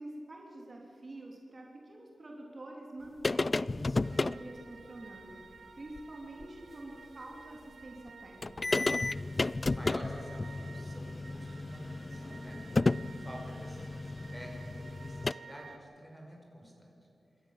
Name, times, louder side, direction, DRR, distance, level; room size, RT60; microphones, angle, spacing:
voice 1, 0.0-8.9, right 1 dB, 40° right, -1 dB, 3.3 m, -47 dB
sound 1, 3.2-4.4 6.0-6.1 6.4-6.5 8.1-8.2 8.4-15.3, left 3 dB, 35° left, 0.4 m, -33 dB
sound 2, 4.0-15.8, right 5 dB, 70° right, 1.1 m, -54 dB
voice 2, 9.6-12.7 13.1-16.9, equal, ahead, 0 dB, 5.5 m, -48 dB
26.5 x 13.5 x 7.4 m, 2.8 s
wide cardioid pair, 75°, 0 cm